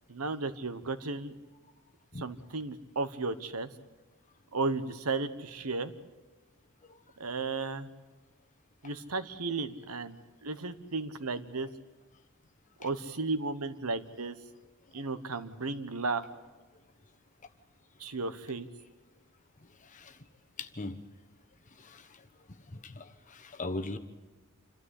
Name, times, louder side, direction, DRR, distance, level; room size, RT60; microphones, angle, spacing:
voice 1, 0.1-1.3 2.2-3.7 4.5-5.9 7.2-7.9 8.8-10.2 10.4-11.7 12.8-14.3 14.9-16.2 18.0-18.7, right 3 dB, 80° right, 12 dB, 1.2 m, -34 dB
voice 2, 20.6-21.0 21.8-22.1 22.8-24.0, left 2 dB, 35° left, 8 dB, 1.2 m, -39 dB
27.5 x 13.0 x 8.4 m, 1.3 s
head